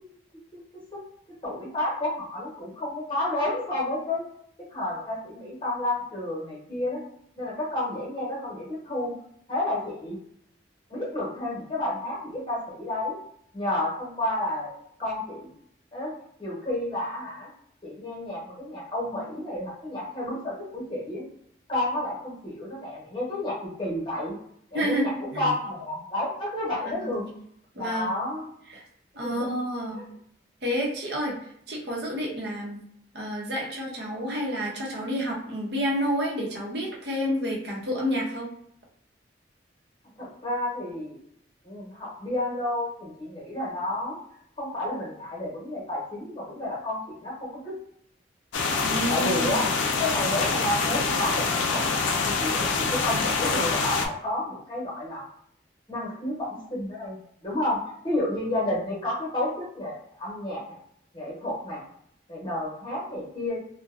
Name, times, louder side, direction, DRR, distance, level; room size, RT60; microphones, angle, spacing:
voice 1, 1.4-4.3 4.7-7.0 7.4-9.1 9.5-10.2 10.9-13.2 13.5-15.5 15.9-17.5 17.8-21.2 21.7-24.3 24.7-27.3 27.8-28.5 29.2-29.5 29.9-30.1 40.2-41.2 41.6-44.2 44.6-47.7 49.1-49.7 50.0-55.2 55.9-57.2 57.4-60.6 61.1-61.8 62.3-63.6, left 1 dB, 25° left, -5 dB, 0.9 m, -31 dB
voice 2, 24.7-25.5 26.8-27.3 27.7-28.3 28.7-28.8 29.1-30.0 30.6-31.3 31.7-32.8 33.1-38.5 48.8-49.7, equal, 60° right, -3 dB, 0.7 m, -29 dB
sound 1, 48.5-54.1, left 4 dB, 85° left, 0.4 m, -25 dB
2.6 x 2.1 x 2.4 m, 0.69 s
head